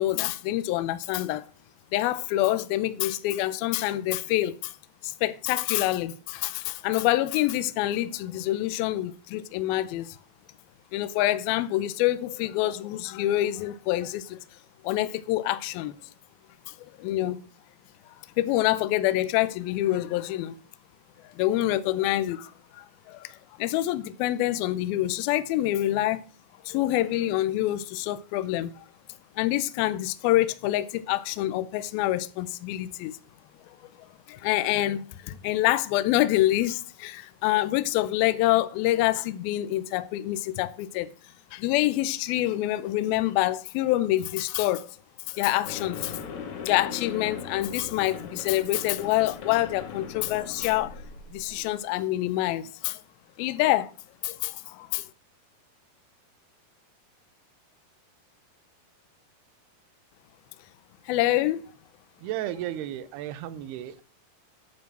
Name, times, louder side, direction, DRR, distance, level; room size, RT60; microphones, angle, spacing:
voice 1, 0.0-1.5 1.9-4.7 5.0-10.2 10.9-14.4 14.8-15.9 16.7-17.4 18.4-20.6 21.3-26.2 26.6-28.8 29.4-33.1 34.3-41.1 41.5-44.9 45.3-46.2 46.6-51.0 51.3-53.0 53.4-53.9 54.2-55.1 61.1-61.7, left 15 dB, 80° left, 2.3 m, -26 dB
sound 1, 45.7-51.7, left 6 dB, 55° left, 2.3 m, -39 dB
voice 2, 62.2-64.0, right 12 dB, 80° right, 2.7 m, -34 dB
9.7 x 6.7 x 6.1 m
omnidirectional pair, 4.7 m